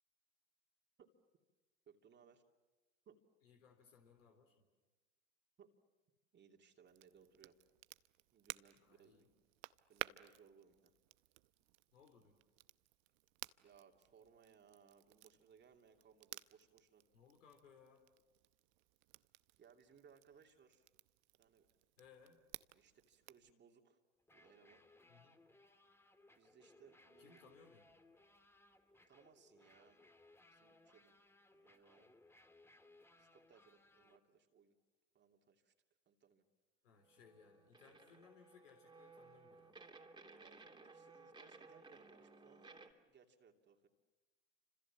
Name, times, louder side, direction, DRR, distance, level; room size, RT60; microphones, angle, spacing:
voice 1, 1.9-2.4 3.0-3.2 5.6-5.7 6.3-7.6 8.3-9.3 9.9-11.0 13.6-17.1 19.6-20.9 21.4-21.7 22.7-24.0 24.3-24.8 26.3-27.5 29.1-30.0 30.4-31.2 31.5-32.1 33.2-34.8 35.1-35.7 36.1-36.5 40.4-43.9, right 7 dB, 30° right, 3 dB, 2.8 m, -66 dB
voice 2, 3.4-4.7 8.7-9.3 11.9-12.4 17.1-18.0 22.0-22.4 25.1-25.4 27.2-27.9 36.8-39.8, left 6 dB, 80° left, 4 dB, 3.8 m, -65 dB
Crackle, 6.9-23.5, right 22 dB, 55° right, 0.8 m, -55 dB
sound 1, 24.2-34.2, left 2 dB, 5° left, 2.1 m, -67 dB
sound 2, 37.0-42.9, right 3 dB, 10° right, 3.0 m, -59 dB
29.5 x 26.5 x 7.4 m, 1.2 s
hypercardioid pair, 100°, 37 cm